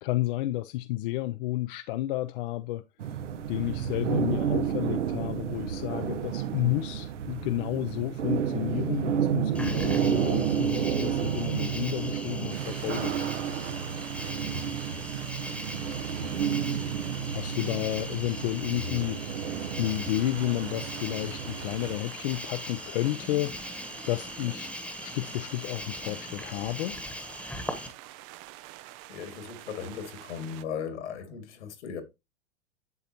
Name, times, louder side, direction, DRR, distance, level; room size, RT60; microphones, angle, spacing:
voice 1, 0.0-2.8 3.5-13.1 17.3-19.5 19.8-23.6 24.1-24.7 25.0-27.0, left 16 dB, 50° left, 0.5 m, -31 dB
sound 1, 3.0-22.0, right 8 dB, 80° right, 1.0 m, -31 dB
Cricket, 9.5-27.9, left 1 dB, 5° left, 1.1 m, -40 dB
sound 2, 12.5-30.6, right 16 dB, 30° right, 0.4 m, -47 dB
voice 2, 29.1-32.0, left 7 dB, 70° left, 2.3 m, -37 dB
10.5 x 4.0 x 2.8 m
hypercardioid pair, 120°, 35 cm